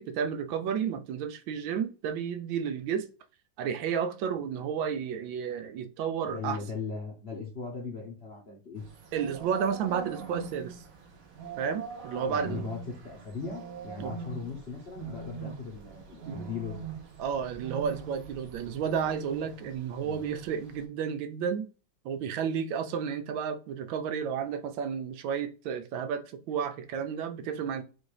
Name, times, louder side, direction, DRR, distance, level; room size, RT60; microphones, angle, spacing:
voice 1, 0.0-3.1 3.6-6.6 9.1-10.8 11.6-12.7 14.0-14.2 15.4-15.5 16.3-16.5 17.2-21.7 22.0-27.8, right 7 dB, 85° right, 1.4 m, -32 dB
voice 2, 6.2-8.8 12.3-16.9 20.0-20.2, left 5 dB, 45° left, 0.9 m, -38 dB
sound 1, 8.8-20.8, right 5 dB, 55° right, 1.1 m, -43 dB
4.3 x 2.6 x 4.7 m
omnidirectional pair, 2.1 m